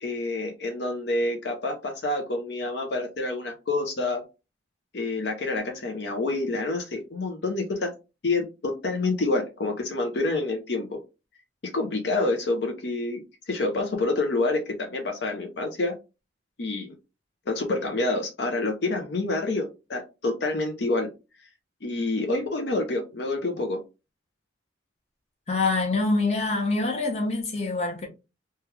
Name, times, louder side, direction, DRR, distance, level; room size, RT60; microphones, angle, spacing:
voice 1, 0.0-4.2 4.9-7.9 8.2-11.0 11.7-15.9 16.6-16.9 17.5-21.1 21.8-23.8, left 2 dB, 65° left, 0.6 m, -28 dB
voice 2, 25.5-28.1, left 3 dB, 35° left, 0.9 m, -25 dB
3.2 x 2.3 x 3.1 m
head